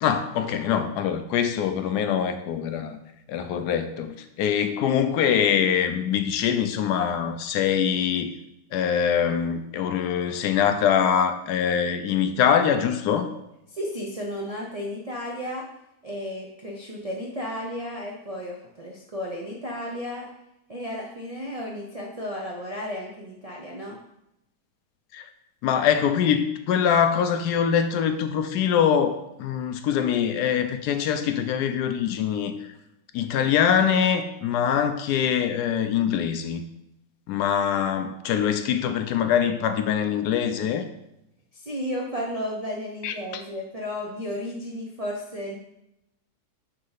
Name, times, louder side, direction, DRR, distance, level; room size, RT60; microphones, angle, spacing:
voice 1, 0.0-3.0 3.3-8.3 8.7-13.3 25.1-25.3 25.6-32.7 33.1-36.6 37.3-40.9 43.0-43.1, left 8 dB, 75° left, 8 dB, 1.1 m, -23 dB
voice 2, 13.7-15.7 16.0-20.3 20.7-24.0 41.5-45.6, equal, 55° right, -2 dB, 0.4 m, -33 dB
6.4 x 2.7 x 5.6 m, 0.85 s
omnidirectional pair, 1.8 m